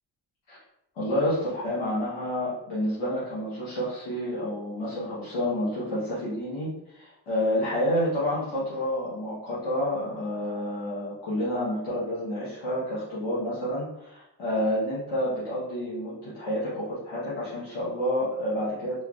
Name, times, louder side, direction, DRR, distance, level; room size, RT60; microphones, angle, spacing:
voice 1, 0.9-19.0, left 1 dB, 85° left, -10 dB, 1.1 m, -29 dB
4.3 x 2.1 x 2.4 m, 0.81 s
supercardioid pair, 45°, 49 cm